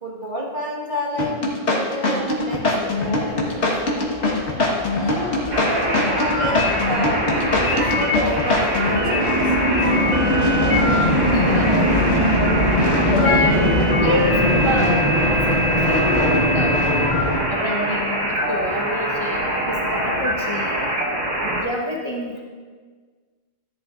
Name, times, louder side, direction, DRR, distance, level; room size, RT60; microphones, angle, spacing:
voice 1, 0.0-4.1 4.9-9.8, equal, 40° right, -3 dB, 1.9 m, -30 dB
sound 1, 1.2-9.0, left 2 dB, 65° left, 1.8 m, -22 dB
sound 2, 2.6-17.4, equal, 45° left, 2.0 m, -22 dB
sound 3, 5.5-21.6, equal, 80° right, 1.7 m, -24 dB
voice 2, 11.3-12.3 13.1-15.1 15.3-16.8 17.5-20.8 21.4-22.4, left 1 dB, 25° left, -2 dB, 1.1 m, -28 dB
14.0 x 10.5 x 2.5 m, 1.5 s
omnidirectional pair, 1.3 m